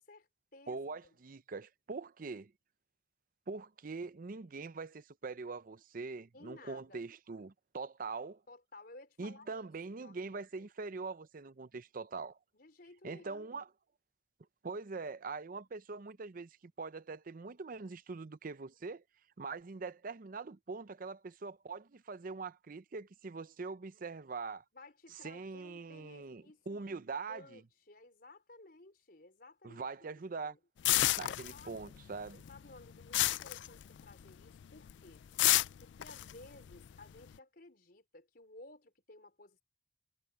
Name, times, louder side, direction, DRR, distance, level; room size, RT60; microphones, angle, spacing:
voice 1, 0.0-1.2 6.3-7.0 8.5-9.7 10.0-10.7 12.5-13.5 24.7-30.6 31.3-32.0 32.3-35.2 35.8-39.6, left 2 dB, 55° left, 4.6 m, -56 dB
voice 2, 0.7-2.5 3.5-8.4 9.2-12.4 13.0-13.7 14.6-19.0 19.4-24.6 25.2-27.6 29.6-30.6 31.2-32.4, right 4 dB, 50° right, 0.6 m, -43 dB
sound 1, 30.8-32.0 32.3-34.3 34.6-34.9 35.4-37.3, left 16 dB, 85° left, 0.4 m, -30 dB
head